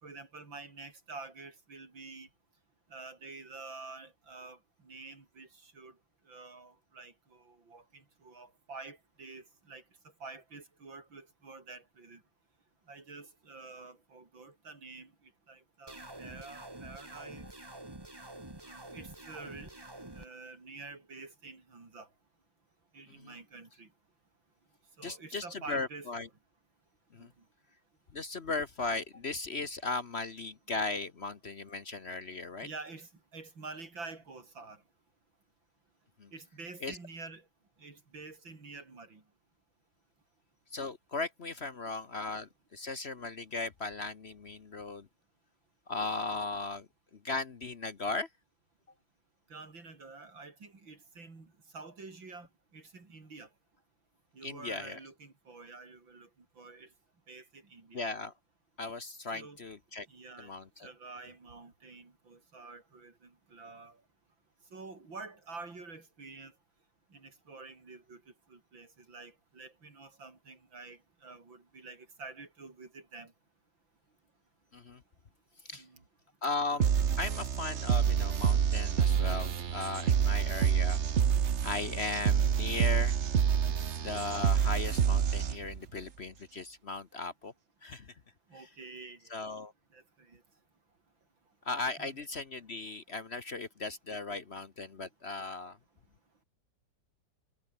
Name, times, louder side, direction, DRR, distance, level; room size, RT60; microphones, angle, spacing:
voice 1, 0.0-2.3 2.9-4.6 4.8-5.9 6.3-9.8 10.2-12.2 12.9-15.1 15.5-17.5 18.7-19.7 20.1-22.1 22.9-23.9 25.0-26.1 27.2-27.3 32.6-34.8 36.3-37.4 37.8-39.2 49.5-52.5 52.7-53.5 54.3-56.3 56.6-56.9 57.3-58.1 59.3-59.6 60.1-60.5 60.8-64.0 64.7-66.5 67.1-68.2 68.5-73.3 75.7-76.0 88.5-89.6 89.9-90.4 92.0-92.2, right 3 dB, 90° right, 5.3 m, -48 dB
sound 1, 15.9-20.3, right 2 dB, 15° right, 2.0 m, -47 dB
voice 2, 25.0-26.3 27.1-27.3 28.1-32.7 36.2-36.3 36.8-37.0 40.7-45.1 45.9-46.9 47.2-48.3 54.4-55.0 57.9-58.3 58.8-60.1 60.4-60.9 74.7-75.0 75.6-75.8 76.4-81.0 81.6-83.2 84.0-87.5 87.8-88.1 88.5-88.7 89.3-89.7 91.6-95.8, left 3 dB, 40° left, 1.2 m, -37 dB
sound 2, 76.8-85.8, right 8 dB, 45° right, 1.1 m, -28 dB
omnidirectional pair, 2.0 m